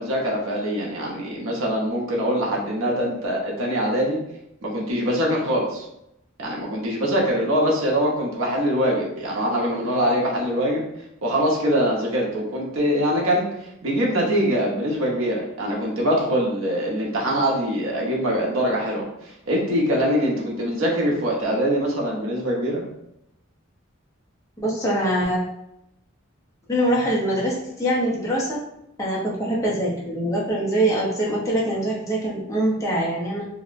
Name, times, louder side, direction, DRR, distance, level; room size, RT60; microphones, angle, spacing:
voice 1, 0.0-4.2 4.6-5.8 6.4-10.8 11.2-13.5 13.8-22.8, equal, 85° right, -2 dB, 0.7 m, -23 dB
voice 2, 24.6-25.4 26.7-28.6 29.0-33.4, right 1 dB, 15° left, -6 dB, 0.5 m, -23 dB
2.7 x 2.0 x 2.4 m, 0.82 s
head